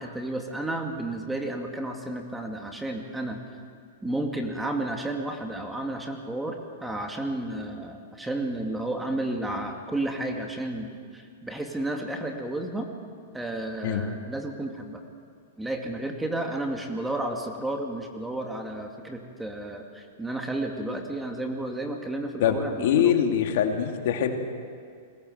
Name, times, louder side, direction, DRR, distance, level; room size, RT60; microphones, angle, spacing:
voice 1, 0.0-3.4 4.0-12.9 13.3-15.0 15.6-23.1, right 1 dB, 5° right, 3 dB, 2.3 m, -32 dB
voice 2, 22.4-24.4, left 9 dB, 65° left, 4 dB, 2.5 m, -23 dB
22.5 x 18.0 x 8.0 m, 2.2 s
hypercardioid pair, 125°, 0 cm